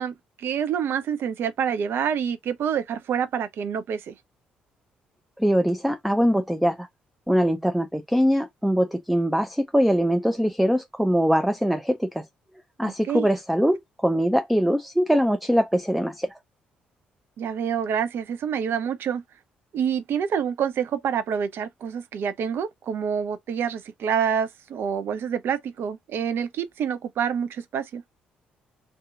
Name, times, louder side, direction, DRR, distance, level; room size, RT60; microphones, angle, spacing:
voice 1, 0.0-4.1 12.8-13.3 17.4-19.2 19.7-28.0, right 8 dB, 55° right, 0.6 m, -27 dB
voice 2, 5.4-6.9 7.3-12.3 12.8-16.3, equal, ahead, 0.4 m, -22 dB
3.4 x 2.8 x 2.5 m
figure-of-eight pair, 45°, 5 cm